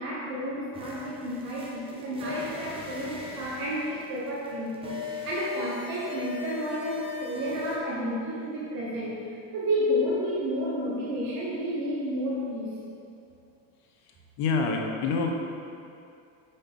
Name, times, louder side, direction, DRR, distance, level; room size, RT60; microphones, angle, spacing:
voice 1, 0.0-12.7, equal, 45° right, -6 dB, 1.2 m, -31 dB
sound 1, 0.7-7.8, left 6 dB, 10° right, 0.9 m, -39 dB
voice 2, 14.1-15.3, left 4 dB, 55° left, 2 dB, 0.9 m, -27 dB
5.5 x 5.5 x 3.7 m, 2.5 s
supercardioid pair, 120°, 47 cm